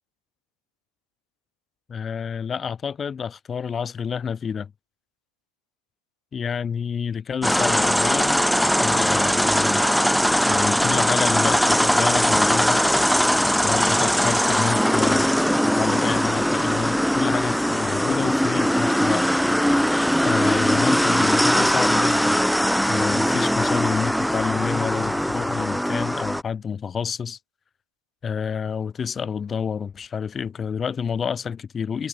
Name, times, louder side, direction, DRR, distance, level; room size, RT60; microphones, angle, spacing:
voice 1, 1.9-4.7 6.3-8.4 8.7-9.9 10.5-13.2 13.6-15.3 15.6-19.3 20.2-22.4 22.9-27.4 28.2-32.1, left 7 dB, 15° left, 0.8 m, -29 dB
sound 1, 7.4-26.4, equal, ahead, 0.3 m, -20 dB
supercardioid pair, 165°, 0 cm